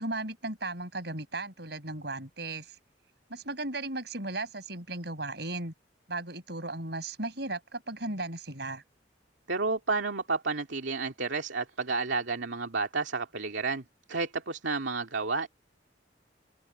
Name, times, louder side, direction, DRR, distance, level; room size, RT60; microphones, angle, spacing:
voice 1, 0.0-2.8 3.3-5.7 6.1-8.8, right 2 dB, 60° right, 7.7 m, -36 dB
voice 2, 9.5-13.8 14.1-15.5, right 4 dB, 75° right, 2.4 m, -31 dB
head